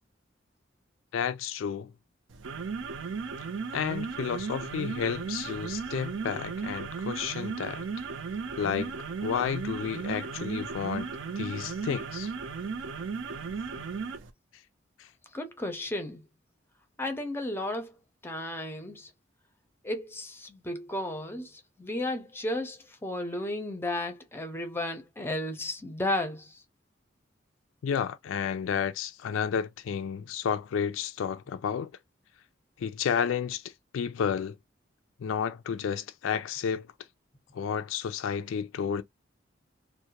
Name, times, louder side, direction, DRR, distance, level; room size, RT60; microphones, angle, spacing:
voice 1, 1.1-1.9 3.7-7.8 8.6-8.9 9.2-11.1 11.4-12.3 27.8-31.9 32.8-33.6 33.9-34.6 35.2-36.9 37.5-39.0, left 7 dB, 80° left, 0.3 m, -31 dB
sound 1, 2.3-14.3, right 5 dB, 70° right, 0.5 m, -35 dB
voice 2, 15.3-16.2 17.0-18.0 18.2-19.1 19.8-26.6, left 1 dB, 10° left, 0.5 m, -34 dB
2.4 x 2.1 x 2.8 m
head